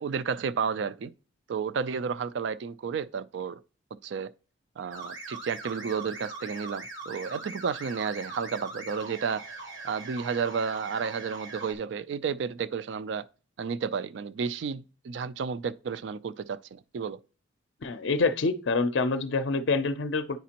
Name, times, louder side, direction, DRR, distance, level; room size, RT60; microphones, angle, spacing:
voice 1, 0.0-1.1 1.5-3.6 4.0-4.3 4.8-9.4 9.8-13.3 13.6-17.2, right 6 dB, 65° right, 0.3 m, -32 dB
sound 1, 4.9-11.7, right 3 dB, 80° right, 1.5 m, -41 dB
voice 2, 17.8-20.4, left 3 dB, 65° left, 0.5 m, -26 dB
9.2 x 5.0 x 2.9 m
head